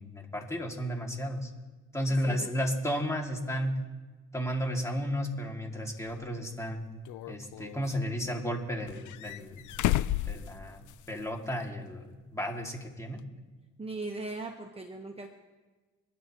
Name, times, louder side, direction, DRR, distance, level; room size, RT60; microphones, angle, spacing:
voice 1, 0.0-1.5 1.9-3.7 4.3-6.9 7.3-9.7 10.3-10.8 11.1-13.2, equal, 10° left, 0 dB, 2.4 m, -33 dB
voice 2, 2.1-2.5 13.8-15.3, right 2 dB, 20° right, 3 dB, 1.2 m, -39 dB
sound 1, 6.1-6.2 7.0-8.0 8.9-11.2 11.5-11.6 13.2-13.3, left 14 dB, 75° left, 0.5 m, -32 dB
26.0 x 10.5 x 3.0 m, 1.3 s
cardioid pair, 90°, 30 cm